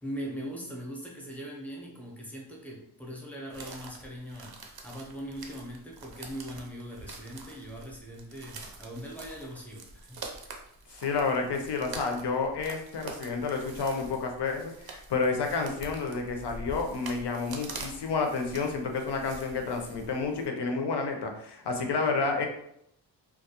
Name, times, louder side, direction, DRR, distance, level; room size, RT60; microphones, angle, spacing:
voice 1, 0.0-10.2, equal, 5° left, -2 dB, 0.6 m, -41 dB
sound 1, 3.5-20.5, right 3 dB, 60° right, 0.5 m, -45 dB
voice 2, 10.9-22.5, left 4 dB, 65° left, 3 dB, 0.6 m, -30 dB
2.3 x 2.0 x 2.8 m, 0.73 s
wide cardioid pair, 85°, 43 cm